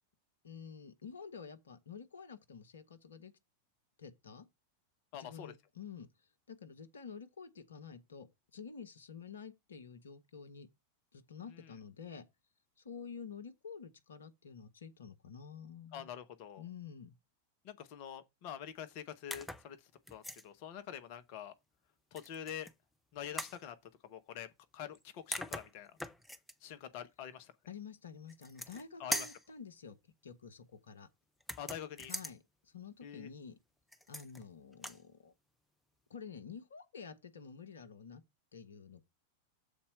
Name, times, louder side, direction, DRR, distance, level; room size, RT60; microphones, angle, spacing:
voice 1, 0.4-3.3 4.0-4.5 5.2-6.1 6.5-10.7 11.1-12.2 12.8-16.1 16.6-17.2 27.7-30.0 30.2-31.1 32.1-33.6 34.1-35.3 36.1-38.2 38.5-39.0, left 6 dB, 70° left, 1.1 m, -49 dB
voice 2, 5.1-5.5 11.5-11.7 15.9-16.6 17.6-21.5 22.1-22.7 23.1-23.7 24.0-24.5 24.7-26.0 26.6-27.5 29.0-29.3 31.6-32.1 33.0-33.3, left 9 dB, 45° left, 0.9 m, -46 dB
sound 1, 19.3-19.7 20.1-20.5 22.2-22.7 23.4-23.6 25.0-25.1 25.3-26.5 28.3-28.8 29.1-29.5 31.4-32.4 33.9-34.4 34.7-35.0, equal, 5° left, 0.7 m, -41 dB
7.1 x 4.3 x 6.5 m
figure-of-eight pair, 90°, 0 cm